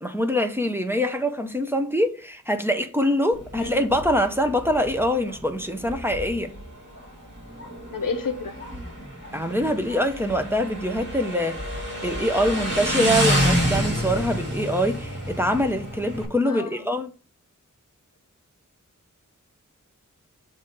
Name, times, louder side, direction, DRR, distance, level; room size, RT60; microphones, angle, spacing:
voice 1, 0.0-6.5 9.3-17.1, equal, 5° right, 0.7 m, -24 dB
Motorcycle, 3.3-16.3, equal, 35° right, 2.5 m, -29 dB
voice 2, 7.9-8.6 16.4-16.9, left 5 dB, 90° left, 0.8 m, -30 dB
7.1 x 2.7 x 5.2 m
wide cardioid pair, 50°, 32 cm